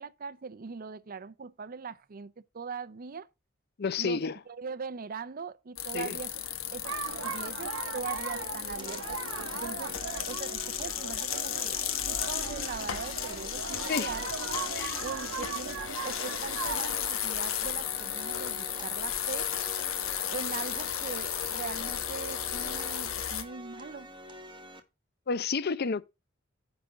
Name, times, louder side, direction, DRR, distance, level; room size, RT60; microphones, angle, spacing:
voice 1, 0.0-3.3 4.0-6.3 6.7-6.9 7.2-9.2 9.5-9.9 10.3-11.8 12.0-14.3 15.0-19.5 20.3-24.1, right 5 dB, 45° right, 0.5 m, -41 dB
voice 2, 3.8-4.4 5.9-6.2 13.9-14.1 14.7-15.0 25.3-26.0, left 5 dB, 55° left, 0.6 m, -30 dB
sound 1, 5.8-23.4, left 9 dB, 85° left, 1.2 m, -34 dB
sound 2, 6.8-17.1, right 5 dB, 90° right, 0.8 m, -39 dB
sound 3, 8.8-24.8, equal, 25° right, 1.1 m, -48 dB
9.6 x 3.6 x 6.0 m
head